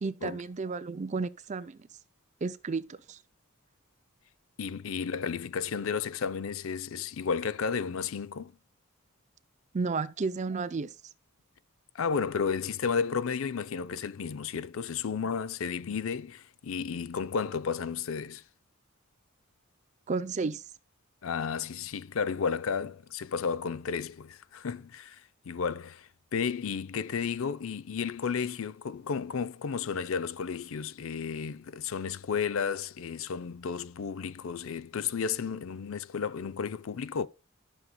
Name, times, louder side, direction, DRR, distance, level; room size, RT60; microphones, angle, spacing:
voice 1, 0.0-1.9 2.4-3.2 9.7-10.9 20.1-20.7, right 4 dB, 35° right, 0.4 m, -32 dB
voice 2, 4.6-8.5 11.9-18.4 21.2-37.3, left 6 dB, 65° left, 0.5 m, -33 dB
12.5 x 6.4 x 2.2 m
head